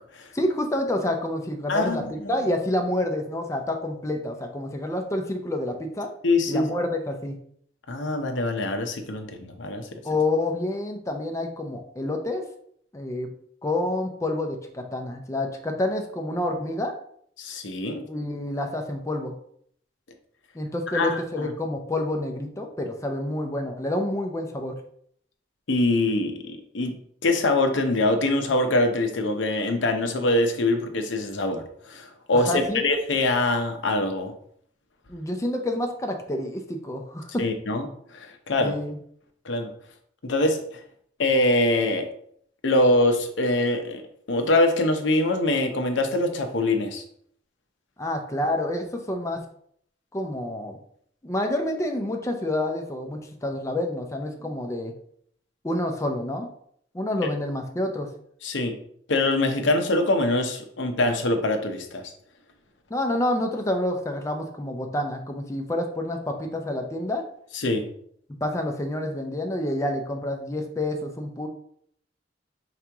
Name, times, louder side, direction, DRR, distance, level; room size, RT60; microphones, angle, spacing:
voice 1, 0.3-6.1 6.5-7.3 10.0-12.5 12.9-13.3 13.6-16.9 18.0-19.3 20.5-24.8 32.5-32.8 35.1-37.4 38.6-39.0 48.0-49.4 50.1-50.8 51.2-54.9 55.6-56.5 56.9-58.1 62.9-67.3 68.4-71.5, left 1 dB, 15° left, 4 dB, 0.5 m, -28 dB
voice 2, 1.7-2.3 6.2-6.7 7.9-9.9 17.4-18.0 20.9-21.5 25.7-27.0 27.2-34.3 37.4-37.9 38.1-38.7 39.4-39.7 40.2-40.8 41.2-42.1 42.6-44.0 44.3-47.0 58.4-58.8 59.1-62.0 67.5-67.9, left 2 dB, 90° left, 5 dB, 0.7 m, -24 dB
4.9 x 3.0 x 3.4 m, 0.65 s
head